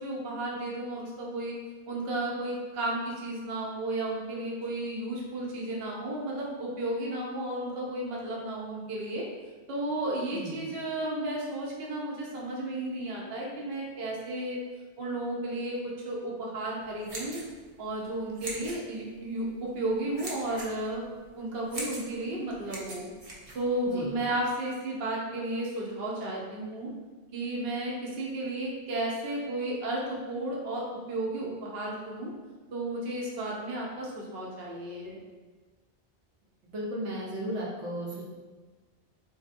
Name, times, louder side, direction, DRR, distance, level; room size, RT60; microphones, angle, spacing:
voice 1, 0.0-1.5 1.9-9.2 9.7-14.6 15.0-15.8 16.0-17.4 17.8-21.0 21.4-23.1 23.5-26.9 27.3-32.3 32.7-35.2, right 1 dB, 60° right, -4 dB, 0.9 m, -33 dB
voice 2, 10.3-10.7 23.8-24.2 36.7-38.3, right 1 dB, 90° right, -5 dB, 1.1 m, -35 dB
sound 1, 16.8-24.2, right 2 dB, 40° right, 0.6 m, -43 dB
3.9 x 2.6 x 2.5 m, 1.3 s
omnidirectional pair, 1.2 m